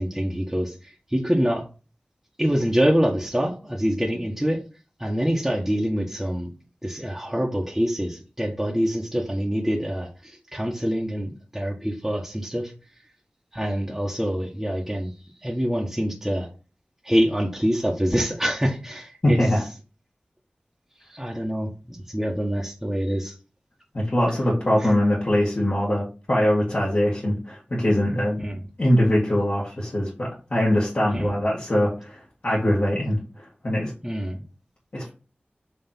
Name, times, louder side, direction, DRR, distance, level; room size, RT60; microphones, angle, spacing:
voice 1, 0.0-1.6 2.4-4.6 5.0-6.5 6.8-12.7 13.5-15.1 15.4-16.5 17.0-19.4 21.1-23.3 24.8-24.9 28.4-28.6 31.1-31.3 34.0-34.4, equal, 10° right, -2 dB, 1.1 m, -25 dB
voice 2, 19.2-19.6 23.9-28.4 28.8-33.9 34.9-35.1, left 1 dB, 50° left, -6 dB, 2.0 m, -22 dB
5.7 x 3.2 x 5.7 m, 0.34 s
wide cardioid pair, 70°, 4 cm